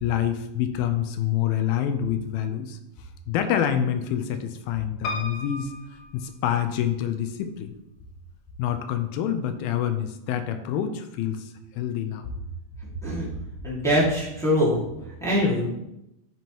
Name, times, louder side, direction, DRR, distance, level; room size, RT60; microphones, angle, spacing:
voice 1, 0.0-2.8 3.3-5.7 6.1-7.7 8.6-12.3, left 10 dB, 90° left, 7 dB, 2.5 m, -27 dB
Piano, 5.0-7.0 7.6-8.4 8.7-8.8 9.0-9.1, left 2 dB, 70° left, 2.0 m, -36 dB
voice 2, 12.8-13.3 13.6-14.8 15.2-15.6, equal, ahead, -7 dB, 0.9 m, -23 dB
11.0 x 4.6 x 3.0 m, 0.88 s
omnidirectional pair, 4.1 m